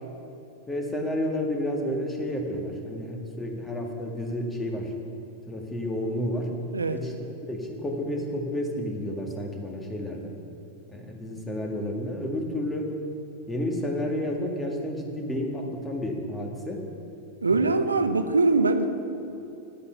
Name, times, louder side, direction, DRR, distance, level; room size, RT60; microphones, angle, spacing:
voice 1, 0.7-4.9 5.5-6.5 6.9-7.1 7.5-10.3 10.9-12.9 13.5-16.8 17.5-17.9, left 1 dB, 10° left, 1 dB, 1.7 m, -31 dB
voice 2, 17.4-18.9, right 3 dB, 75° right, 9 dB, 0.6 m, -22 dB
10.0 x 7.9 x 7.0 m, 2.8 s
figure-of-eight pair, 90°, 0 cm